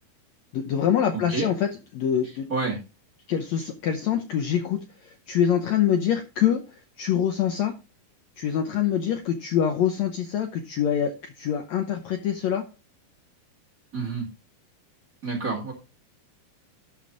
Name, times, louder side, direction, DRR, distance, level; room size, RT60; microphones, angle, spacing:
voice 1, 0.5-2.5 3.3-4.8 5.3-6.6 7.0-7.7 8.4-12.6, left 9 dB, 90° left, 6 dB, 1.5 m, -25 dB
voice 2, 1.1-1.5 2.5-2.8 13.9-14.3 15.2-15.7, right 4 dB, 30° right, 1 dB, 2.0 m, -28 dB
12.0 x 5.1 x 3.8 m, 0.29 s
omnidirectional pair, 4.3 m